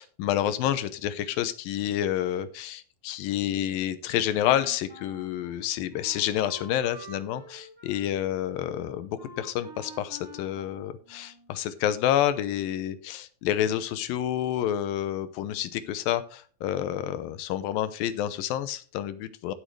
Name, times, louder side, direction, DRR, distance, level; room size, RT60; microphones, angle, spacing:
voice 1, 0.0-19.5, left 11 dB, 85° left, 13 dB, 2.6 m, -29 dB
Wind instrument woodwind instrument, 4.4-11.6, equal, 15° right, 0.8 m, -48 dB
14.0 x 7.3 x 3.2 m, 0.40 s
omnidirectional pair, 4.0 m